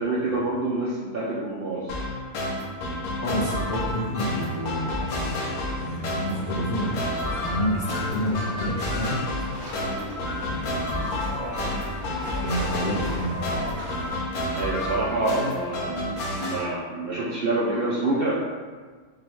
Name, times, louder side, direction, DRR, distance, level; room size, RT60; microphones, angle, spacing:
voice 1, 0.0-2.0 12.4-12.8 14.5-18.4, right 2 dB, 80° right, -6 dB, 0.5 m, -27 dB
sound 1, 1.9-16.6, left 1 dB, 75° left, 1.1 m, -30 dB
voice 2, 3.2-5.5 5.8-9.6 10.4-11.7 12.0-13.7, equal, 90° left, -6 dB, 0.4 m, -30 dB
sound 2, 4.4-14.2, equal, 55° left, 0.9 m, -45 dB
sound 3, 7.1-14.1, left 1 dB, 65° right, 1.6 m, -36 dB
4.8 x 2.2 x 3.0 m, 1.5 s
omnidirectional pair, 1.6 m